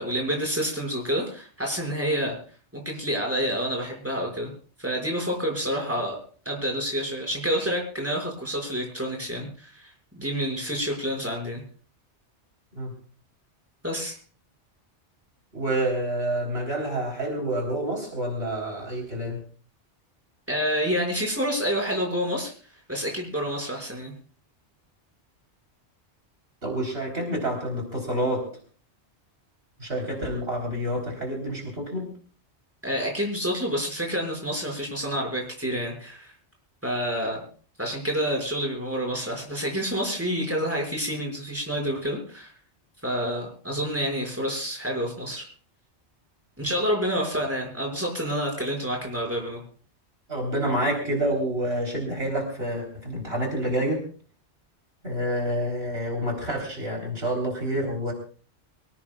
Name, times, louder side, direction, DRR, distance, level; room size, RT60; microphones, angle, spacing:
voice 1, 0.0-2.3 2.7-4.5 4.8-6.2 6.4-11.6 13.8-14.2 20.5-22.5 22.9-24.1 32.8-36.3 36.8-37.4 37.8-42.5 43.0-45.4 46.6-49.6, equal, 10° right, 0 dB, 5.9 m, -28 dB
voice 2, 15.5-19.4 26.6-28.5 29.8-32.1 50.3-54.0 55.0-58.1, right 1 dB, 60° right, 1 dB, 4.1 m, -28 dB
24.5 x 17.0 x 2.4 m, 0.41 s
omnidirectional pair, 1.2 m